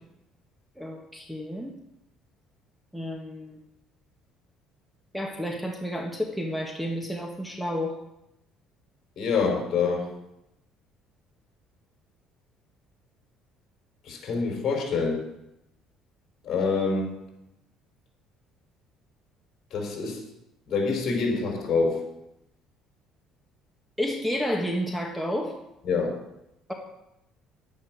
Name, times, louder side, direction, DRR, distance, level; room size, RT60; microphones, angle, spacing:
voice 1, 0.8-1.7 2.9-3.6 5.1-7.9 24.0-25.5 26.7-26.8, equal, ahead, 2 dB, 1.4 m, -30 dB
voice 2, 9.2-10.1 14.0-15.2 16.4-17.2 19.7-20.2 20.7-22.1 25.9-26.1, left 4 dB, 50° left, 1 dB, 5.1 m, -26 dB
11.0 x 10.0 x 6.3 m, 0.86 s
cardioid pair, 125°, 0 cm